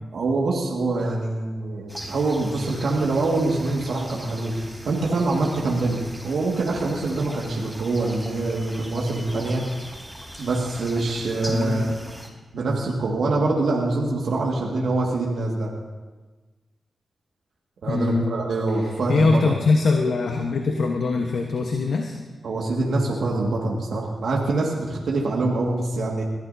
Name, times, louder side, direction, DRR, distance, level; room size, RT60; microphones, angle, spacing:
voice 1, 0.1-9.6 10.4-12.0 12.5-15.7 17.8-19.5 22.4-26.2, right 2 dB, 75° right, -2 dB, 1.9 m, -24 dB
sound 1, 1.9-12.3, equal, ahead, 3.6 m, -40 dB
voice 2, 11.5-12.0 17.8-18.3 19.1-22.1, left 3 dB, 75° left, 2 dB, 1.1 m, -22 dB
21.5 x 14.0 x 2.7 m, 1.2 s
cardioid pair, 55°, 0 cm